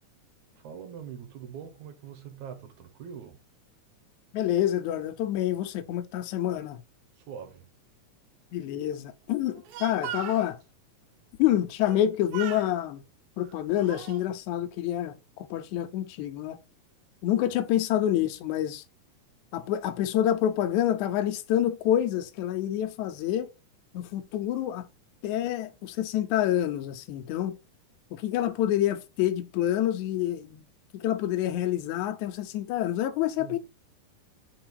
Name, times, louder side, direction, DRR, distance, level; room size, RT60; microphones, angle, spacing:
voice 1, 0.6-3.4 7.2-7.7 17.5-17.6 33.4-33.6, right 8 dB, 70° right, 2.2 m, -43 dB
voice 2, 4.3-6.8 8.5-10.6 11.4-13.0 13.4-16.6 17.2-18.8 19.5-23.5 23.9-24.9 25.2-27.6 28.1-30.7 30.9-33.6, left 12 dB, 75° left, 1.9 m, -27 dB
Speech, 9.4-10.5 11.8-12.1 12.3-12.7 13.4-14.2, right 10 dB, 90° right, 2.4 m, -39 dB
4.8 x 4.3 x 4.6 m
omnidirectional pair, 3.8 m